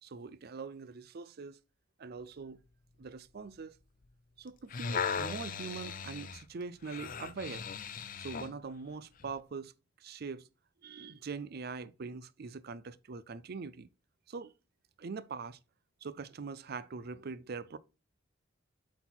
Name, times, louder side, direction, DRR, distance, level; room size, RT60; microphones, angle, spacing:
voice 1, 0.0-1.6 2.0-2.6 3.0-3.8 4.4-7.6 8.2-9.7 10.0-10.5 10.8-13.9 14.3-14.5 15.0-15.6 16.0-17.8, right 4 dB, 55° right, 0.5 m, -43 dB
sound 1, 4.5-8.6 9.2-9.3, left 6 dB, 45° left, 0.6 m, -38 dB
8.1 x 4.1 x 4.3 m
head